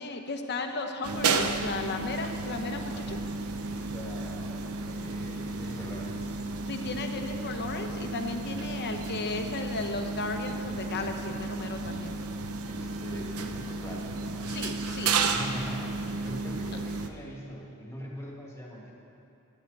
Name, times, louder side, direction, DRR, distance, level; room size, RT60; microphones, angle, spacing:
voice 1, 0.0-3.2 6.7-12.1 14.5-15.2, left 3 dB, 50° left, 5 dB, 1.0 m, -35 dB
sound 1, 1.0-17.1, right 3 dB, 80° right, 0.8 m, -33 dB
voice 2, 3.7-6.4 12.7-14.6 15.3-18.9, equal, 15° left, -3 dB, 2.1 m, -42 dB
16.5 x 11.5 x 4.1 m, 3.0 s
head